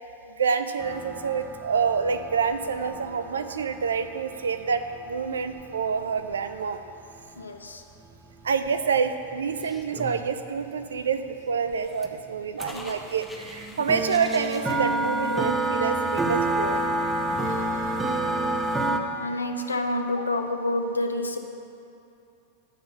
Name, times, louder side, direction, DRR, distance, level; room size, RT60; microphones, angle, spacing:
voice 1, 0.3-6.8 8.4-16.8 18.7-19.0, right 6 dB, 70° right, 10 dB, 0.4 m, -27 dB
sound 1, 0.8-6.4 8.0-8.1 8.7-8.8 8.9-10.5 11.7-11.8 12.0-12.2 12.6-19.0, right 2 dB, 10° right, 0.7 m, -29 dB
voice 2, 7.4-7.8 12.7-13.0 17.4-18.2 19.2-21.4, left 1 dB, 80° left, 5 dB, 0.6 m, -29 dB
sound 2, 12.6-15.9, left 1 dB, 10° left, 1.0 m, -44 dB
11.0 x 3.8 x 6.9 m, 2.7 s
figure-of-eight pair, 90°, 0 cm